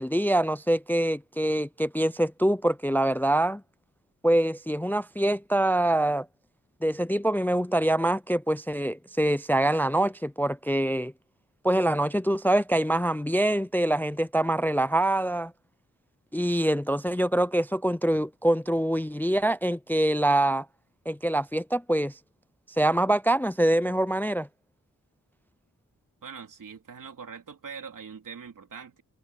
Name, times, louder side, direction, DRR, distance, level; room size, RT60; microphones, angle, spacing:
voice 1, 0.0-3.6 4.2-6.3 6.8-11.1 11.6-15.5 16.3-20.7 21.1-22.1 22.8-24.5, right 1 dB, 5° left, 0.3 m, -25 dB
voice 2, 26.2-29.0, right 6 dB, 85° right, 3.8 m, -42 dB
wide cardioid pair, 135°, 31 cm